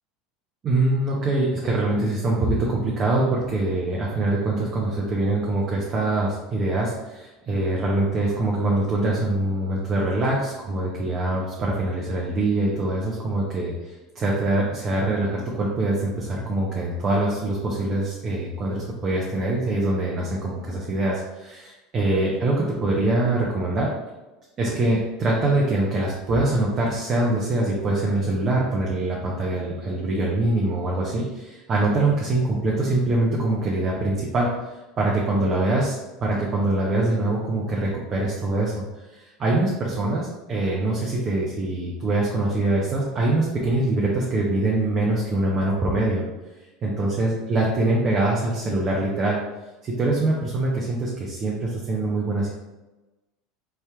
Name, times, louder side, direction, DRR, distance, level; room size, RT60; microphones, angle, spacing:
voice 1, 0.6-23.9 24.6-35.9 36.2-46.2 46.8-49.4 49.8-52.5, right 2 dB, 35° right, -4 dB, 0.9 m, -24 dB
4.3 x 3.5 x 3.4 m, 1.1 s
figure-of-eight pair, 75°, 0 cm